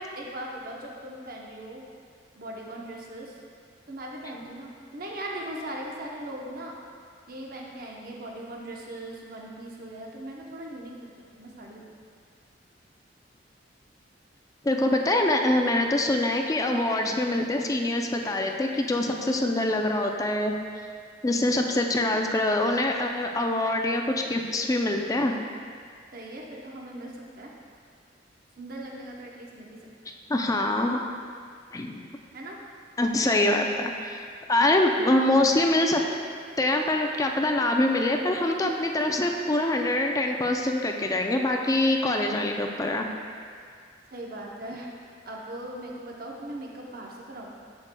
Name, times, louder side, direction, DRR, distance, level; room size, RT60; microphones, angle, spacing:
voice 1, 0.0-1.8 2.4-3.4 3.9-6.7 7.3-11.9 26.1-27.5 28.6-29.8 30.0-30.1 32.3-32.6 44.1-44.9 45.3-47.5, right 1 dB, 50° right, -2 dB, 0.8 m, -39 dB
voice 2, 14.6-20.6 21.2-25.3 30.3-31.0 31.7-32.0 33.0-34.2 34.5-36.0 36.6-43.1, left 1 dB, 20° left, 3 dB, 0.4 m, -24 dB
7.5 x 7.4 x 2.2 m, 2.1 s
head